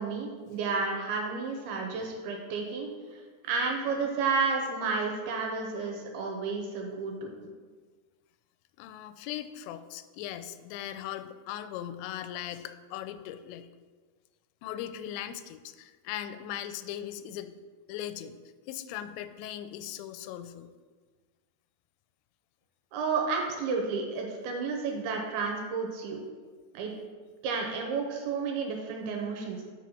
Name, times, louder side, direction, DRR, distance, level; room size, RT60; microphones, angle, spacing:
voice 1, 0.0-7.3 22.9-26.2 26.7-26.9 27.4-29.6, right 4 dB, 75° right, 1 dB, 2.7 m, -31 dB
voice 2, 8.8-13.7 14.6-17.5 17.9-18.4 18.7-20.7, left 11 dB, 90° left, 11 dB, 2.8 m, -39 dB
7.6 x 5.3 x 5.5 m, 1.5 s
omnidirectional pair, 5.0 m